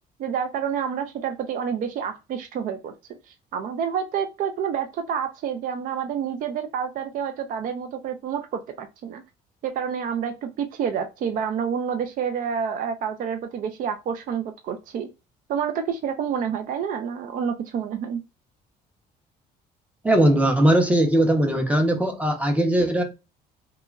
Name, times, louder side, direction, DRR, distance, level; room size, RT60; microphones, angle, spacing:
voice 1, 0.2-2.9 3.5-9.2 9.6-15.1 15.5-18.2, right 7 dB, 55° right, 0.4 m, -28 dB
voice 2, 20.0-23.0, right 1 dB, 10° right, 0.6 m, -19 dB
2.9 x 2.3 x 2.3 m
cardioid pair, 110°, 17 cm